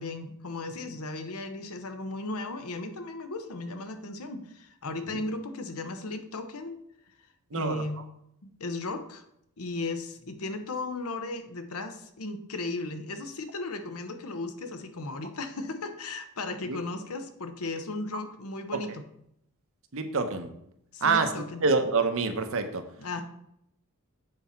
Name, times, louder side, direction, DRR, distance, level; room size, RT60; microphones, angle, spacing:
voice 1, 0.0-6.8 7.5-8.0 8.4-9.2 9.6-19.0 20.9-21.6 23.0-23.2, left 2 dB, 80° left, 8 dB, 0.9 m, -36 dB
voice 2, 7.5-7.8 16.7-16.8 18.7-18.8 19.9-20.5 21.0-21.3 21.6-22.8, right 4 dB, 65° right, 7 dB, 0.9 m, -26 dB
7.7 x 4.2 x 5.8 m, 0.76 s
head